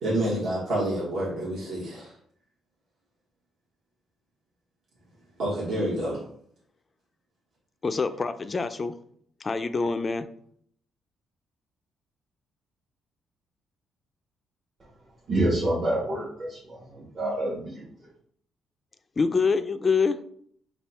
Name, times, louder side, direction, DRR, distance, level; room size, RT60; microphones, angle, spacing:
voice 1, 0.0-2.1 5.4-6.2, right 1 dB, 60° right, 1.4 m, -28 dB
voice 2, 7.8-8.9 9.4-10.3 19.2-20.2, left 4 dB, 30° left, 0.3 m, -25 dB
voice 3, 15.3-17.9, right 1 dB, 40° right, 1.2 m, -27 dB
3.4 x 2.3 x 4.1 m
cardioid pair, 90°, 0 cm